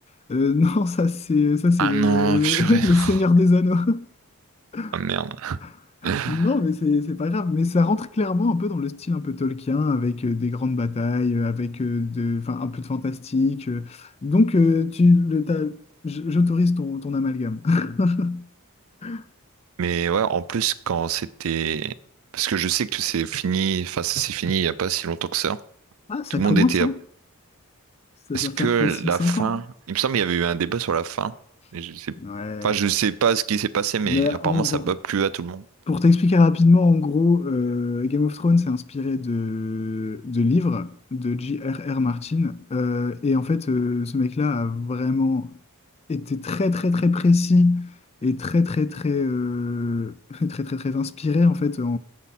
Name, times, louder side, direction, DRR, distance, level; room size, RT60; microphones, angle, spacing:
voice 1, 0.3-4.1 4.7-5.0 6.0-15.8 16.0-18.5 19.0-19.2 26.1-26.9 28.3-29.6 32.2-32.8 34.1-34.8 35.9-45.6 46.1-47.9 48.2-52.0, left 3 dB, 30° left, 0.4 m, -22 dB
voice 2, 1.8-3.2 4.9-5.6 6.0-6.5 19.8-21.9 22.3-25.6 26.3-26.9 28.3-31.3 31.7-32.1 32.6-35.6, right 7 dB, 65° right, 0.4 m, -24 dB
9.5 x 7.1 x 4.2 m
head